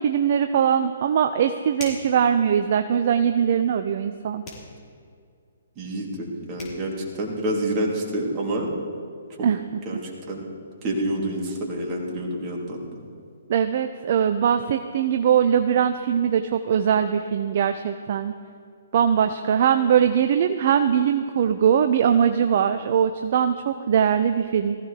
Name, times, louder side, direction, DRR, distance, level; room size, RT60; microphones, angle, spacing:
voice 1, 0.0-4.4 9.4-9.6 13.5-18.3 18.9-24.8, right 8 dB, 45° right, 8 dB, 0.6 m, -21 dB
sound 1, 1.7-2.2 4.4-4.7 6.2-6.3 6.6-6.8, left 3 dB, 25° left, 4.6 m, -38 dB
voice 2, 5.8-8.7 9.4-9.5 9.8-10.4 10.8-13.0, right 1 dB, 25° right, -2 dB, 3.1 m, -28 dB
19.5 x 15.0 x 3.4 m, 2.2 s
figure-of-eight pair, 130°, 0 cm